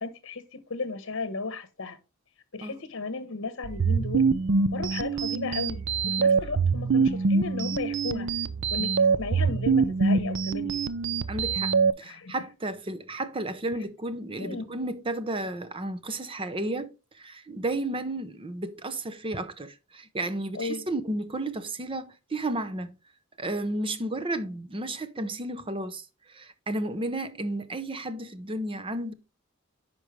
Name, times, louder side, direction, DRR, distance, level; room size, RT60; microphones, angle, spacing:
voice 1, 0.0-2.0 2.5-4.3 4.7-8.3 8.7-10.8 12.0-12.3 14.4-14.6 20.5-20.8, left 3 dB, 65° left, 1.0 m, -35 dB
sound 1, 3.6-11.9, right 4 dB, 60° right, 0.5 m, -25 dB
voice 2, 11.3-23.0 23.4-29.1, right 2 dB, 25° right, 0.7 m, -33 dB
9.9 x 5.3 x 3.2 m
head